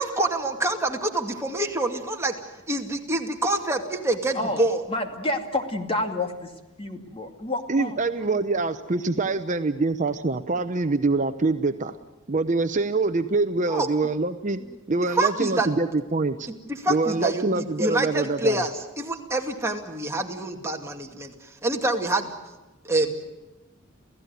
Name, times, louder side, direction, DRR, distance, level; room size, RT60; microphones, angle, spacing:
voice 1, 0.0-2.4 2.7-4.8 13.7-13.9 15.1-15.7 16.7-22.3 22.8-23.1, right 2 dB, 15° right, 2 dB, 2.3 m, -26 dB
voice 2, 4.9-8.3, left 2 dB, 25° left, 5 dB, 2.4 m, -29 dB
voice 3, 7.7-12.0 12.3-14.6 14.9-16.5 16.9-18.6, right 3 dB, 35° right, 9 dB, 0.8 m, -25 dB
28.5 x 16.5 x 9.4 m, 1.1 s
head